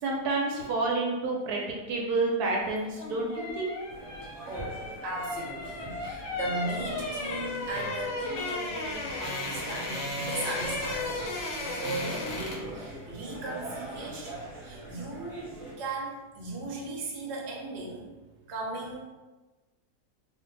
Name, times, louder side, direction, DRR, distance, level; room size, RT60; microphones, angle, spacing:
voice 1, 0.0-3.7, right 3 dB, 75° right, -1 dB, 1.1 m, -29 dB
sound 1, 2.8-12.8 13.0-13.2, left 2 dB, 65° left, 0.7 m, -35 dB
sound 2, 3.9-15.7, right 1 dB, ahead, 0.8 m, -43 dB
voice 2, 4.5-15.5 15.8-18.1 18.5-19.0, right 2 dB, 55° right, -2 dB, 0.8 m, -37 dB
2.5 x 2.3 x 3.8 m, 1.2 s
omnidirectional pair, 1.7 m